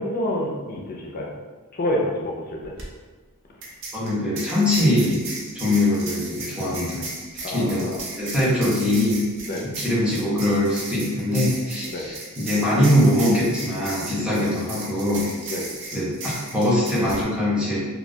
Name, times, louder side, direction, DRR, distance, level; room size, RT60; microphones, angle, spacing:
voice 1, 0.0-1.4 1.7-2.7 7.4-8.0 9.5-9.7 11.9-12.1 14.3-14.5 15.4-15.7, left 1 dB, 40° left, -1 dB, 0.4 m, -28 dB
sound 1, 2.6-2.8 3.6-17.2, right 2 dB, 55° right, 0.5 m, -36 dB
voice 2, 3.9-5.2 5.5-7.1 7.5-7.9 8.2-9.3 9.6-15.3 15.9-17.8, left 1 dB, 5° right, -8 dB, 0.6 m, -22 dB
2.3 x 2.1 x 2.6 m, 1.3 s
head